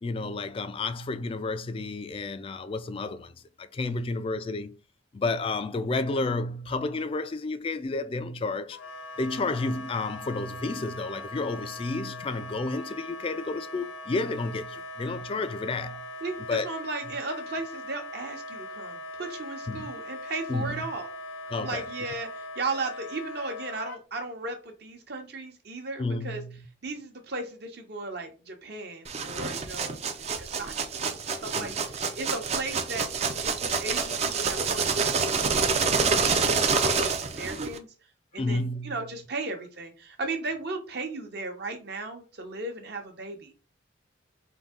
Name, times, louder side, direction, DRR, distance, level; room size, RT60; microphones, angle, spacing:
voice 1, 0.0-4.7 5.1-8.8 9.2-16.0 16.5-16.7 19.7-19.9 20.5-20.8 21.5-21.8 26.0-26.7 31.6-31.8 38.3-39.0, left 3 dB, 30° left, 0.3 m, -31 dB
Wind instrument woodwind instrument, 8.7-24.0, left 2 dB, 85° left, 0.6 m, -41 dB
voice 2, 16.2-21.1 21.5-26.4 26.8-30.0 30.4-33.0 33.4-37.9 38.3-43.5, right 3 dB, 60° right, 0.9 m, -36 dB
sound 1, 29.0-37.8, right 5 dB, 35° right, 0.4 m, -27 dB
3.8 x 2.7 x 3.7 m
head